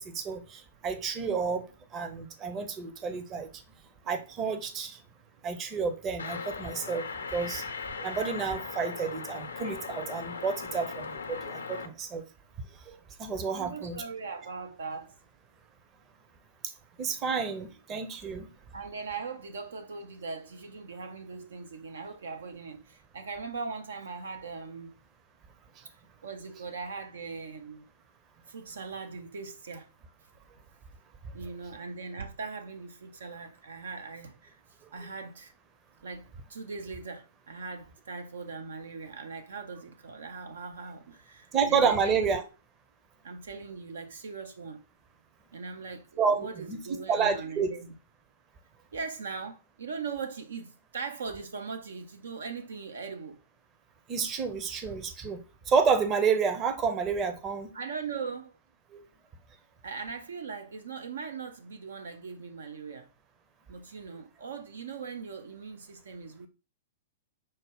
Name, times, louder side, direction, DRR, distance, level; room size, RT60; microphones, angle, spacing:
voice 1, 0.0-1.6 1.9-3.5 4.1-5.0 5.4-7.6 8.0-12.2 12.9-14.0 17.0-18.5 41.5-42.4 46.2-46.4 46.7-46.8 47.1-47.7 54.1-55.4 55.7-57.7 58.9-59.0, right 5 dB, 25° right, 0.7 m, -29 dB
sound 1, 6.2-11.9, left 5 dB, 75° left, 0.6 m, -38 dB
voice 2, 13.5-15.2 18.7-24.9 26.2-27.8 28.5-29.9 31.3-34.6 34.9-35.5 36.0-42.4 43.2-44.8 45.5-48.0 48.9-53.4 57.7-58.5 59.8-63.1 63.7-66.5, right 4 dB, 70° right, 0.5 m, -40 dB
5.4 x 2.1 x 3.5 m
figure-of-eight pair, 110°, 0 cm